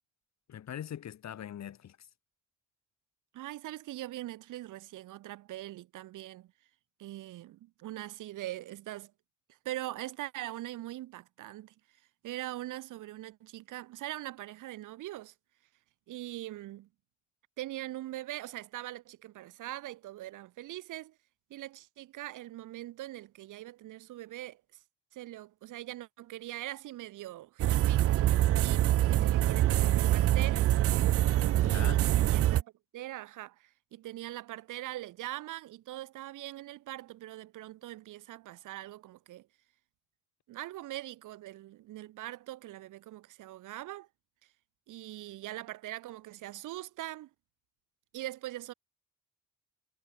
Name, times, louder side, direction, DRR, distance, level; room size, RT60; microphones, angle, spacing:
voice 1, 0.5-2.1 31.6-32.0 32.4-32.5, left 10 dB, 60° left, 3.3 m, -42 dB
voice 2, 3.3-6.5 7.0-9.1 9.5-11.7 12.2-15.3 16.1-16.9 17.6-21.2 21.5-24.6 25.1-28.1 28.6-30.7 31.6-39.5 40.5-44.1 44.9-47.3 48.1-48.7, right 15 dB, 85° right, 2.5 m, -42 dB
sound 1, 27.6-32.6, right 13 dB, 50° right, 0.4 m, -25 dB
cardioid pair, 90°, 30 cm